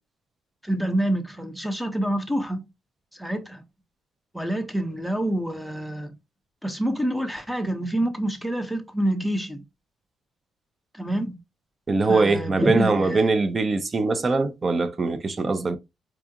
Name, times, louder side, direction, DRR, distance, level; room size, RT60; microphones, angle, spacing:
voice 1, 0.6-2.6 3.1-3.6 4.3-6.1 6.6-9.6 10.9-11.4 12.0-13.2, right 1 dB, ahead, 0.8 m, -27 dB
voice 2, 11.9-15.8, right 3 dB, 35° right, 0.6 m, -22 dB
4.7 x 2.4 x 2.7 m
cardioid pair, 90°, 0 cm